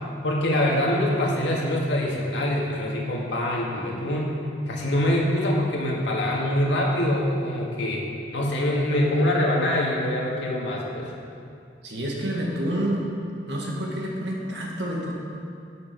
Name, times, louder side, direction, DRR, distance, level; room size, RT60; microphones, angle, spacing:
voice 1, 0.2-4.3 4.7-8.0 8.3-11.1, left 1 dB, 85° left, -2 dB, 1.9 m, -24 dB
voice 2, 11.8-13.1 13.5-15.1, right 1 dB, 75° right, -2 dB, 2.0 m, -28 dB
11.5 x 7.5 x 5.2 m, 2.4 s
head